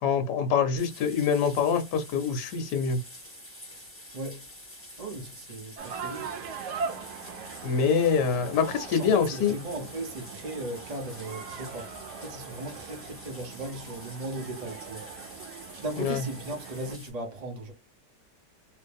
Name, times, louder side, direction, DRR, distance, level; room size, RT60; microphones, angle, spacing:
voice 1, 0.0-3.0 7.6-9.5 16.0-16.2, left 6 dB, 75° left, 1.3 m, -25 dB
sound 1, 0.8-17.1, left 1 dB, 10° left, 1.2 m, -48 dB
voice 2, 4.1-4.5 5.0-6.3 8.9-15.1 15.8-17.7, right 1 dB, 30° right, 0.8 m, -37 dB
sound 2, 5.8-17.0, right 5 dB, 80° right, 1.3 m, -41 dB
3.1 x 2.8 x 3.4 m
omnidirectional pair, 1.8 m